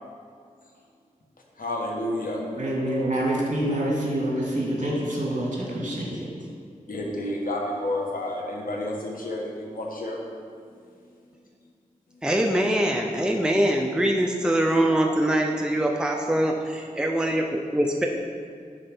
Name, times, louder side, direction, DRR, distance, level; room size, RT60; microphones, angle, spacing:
voice 1, 1.6-2.4 6.9-10.2, left 1 dB, 80° left, -1 dB, 1.5 m, -30 dB
voice 2, 2.6-6.3, right 1 dB, 60° right, -4 dB, 2.2 m, -26 dB
voice 3, 12.2-18.1, right 1 dB, 5° right, 1 dB, 0.6 m, -23 dB
9.9 x 4.4 x 5.4 m, 2.2 s
wide cardioid pair, 70°, 14 cm